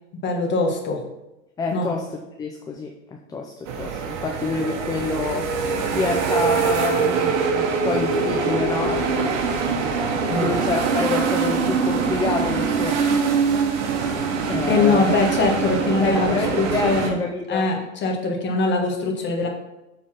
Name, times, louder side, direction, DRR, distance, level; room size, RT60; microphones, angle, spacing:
voice 1, 0.2-1.0 1.7-1.9 10.3-10.5 14.7-17.2 17.5-19.5, left 3 dB, 25° left, 1 dB, 1.6 m, -22 dB
voice 2, 1.6-5.5 5.9-9.3 10.4-13.0 14.5-15.1 16.0-17.7, left 4 dB, 10° left, 2 dB, 0.5 m, -27 dB
sound 1, 3.7-17.1, right 5 dB, 60° right, 1.3 m, -23 dB
7.3 x 4.2 x 5.9 m, 0.95 s
hypercardioid pair, 105°, 40 cm